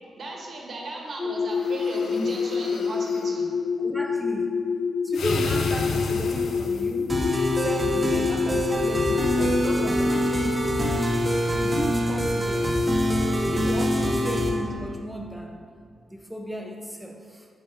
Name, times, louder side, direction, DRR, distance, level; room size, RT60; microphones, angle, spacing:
voice 1, 0.2-3.5, right 1 dB, 55° right, -1 dB, 1.0 m, -35 dB
sound 1, 1.2-9.8, left 5 dB, 40° left, 0.8 m, -27 dB
sound 2, 1.5-3.3 5.1-7.1, left 3 dB, 75° left, 0.4 m, -32 dB
voice 2, 3.8-4.6 5.0-7.2 7.5-10.9 11.5-12.8 13.5-15.7 16.1-17.5, equal, ahead, 2 dB, 0.3 m, -34 dB
sound 3, 7.1-14.5, equal, 15° right, 0.8 m, -24 dB
6.9 x 5.4 x 2.8 m, 2.2 s
wide cardioid pair, 125°, 0 cm